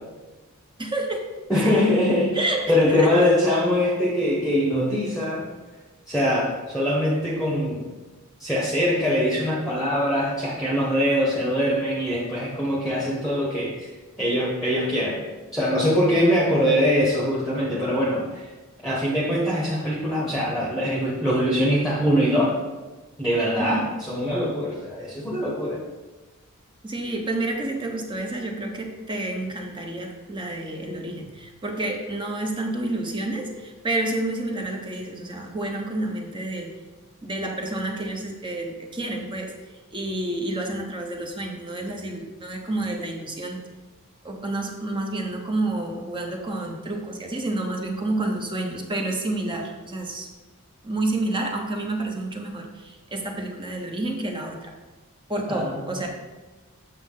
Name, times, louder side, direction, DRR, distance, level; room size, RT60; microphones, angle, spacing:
voice 1, 0.8-1.3 1.6-1.9 2.3-3.3 23.6-23.9 26.8-36.7 37.2-39.5 39.9-43.6 44.2-50.3 50.8-54.7 55.3-56.1, right 2 dB, 20° right, 1 dB, 0.9 m, -29 dB
voice 2, 1.5-5.5 6.1-7.8 8.4-13.9 14.2-15.2 15.5-18.5 18.8-22.6 23.2-25.8 55.5-55.8, equal, ahead, -5 dB, 1.2 m, -23 dB
8.2 x 6.4 x 3.8 m, 1.2 s
head